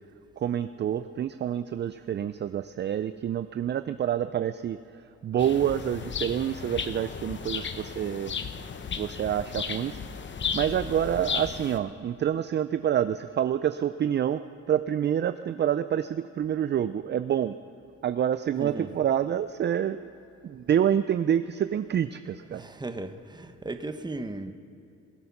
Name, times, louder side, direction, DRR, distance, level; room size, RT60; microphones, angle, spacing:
voice 1, 0.4-4.8 5.2-8.3 9.0-10.0 10.5-14.4 14.7-17.6 18.0-20.1 20.4-22.6, right 9 dB, 35° right, 12 dB, 0.4 m, -27 dB
sound 1, 5.4-11.8, left 6 dB, 40° left, 0.8 m, -34 dB
voice 2, 18.6-18.9 22.5-24.5, right 2 dB, 15° right, 8 dB, 0.9 m, -36 dB
21.0 x 7.9 x 5.9 m, 2.8 s
cardioid pair, 90°, 30 cm